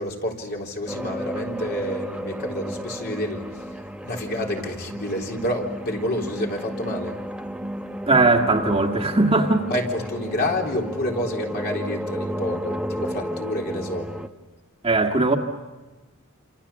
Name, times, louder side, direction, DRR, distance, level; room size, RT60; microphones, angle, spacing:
voice 1, 0.0-7.2 9.7-14.1, left 1 dB, 50° left, 3.9 m, -29 dB
sound 1, 0.9-14.3, equal, 5° right, 0.9 m, -33 dB
voice 2, 8.1-9.7 14.8-15.4, right 3 dB, 25° right, 1.9 m, -19 dB
28.5 x 27.5 x 7.3 m
head